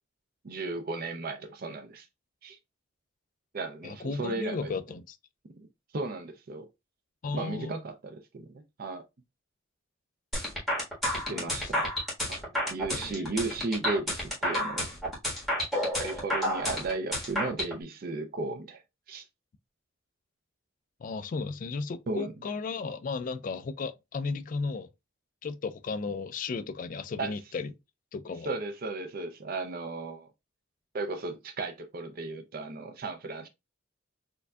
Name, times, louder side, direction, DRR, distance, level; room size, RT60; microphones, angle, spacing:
voice 1, 0.4-2.1 2.4-2.6 3.5-4.7 5.9-6.7 7.3-9.0 11.3-11.9 12.3-12.4 12.7-14.9 16.0-18.8 19.1-19.3 22.1-22.3 27.2-27.3 28.4-30.3 30.9-33.5, right 3 dB, 50° right, 0.5 m, -35 dB
voice 2, 3.8-5.2 7.2-7.8 11.2-11.5 12.9-13.4 21.0-24.9 25.4-27.7 28.1-28.5, left 4 dB, 45° left, 0.3 m, -35 dB
sound 1, 10.3-17.7, equal, ahead, 1.5 m, -30 dB
4.4 x 2.6 x 2.3 m
head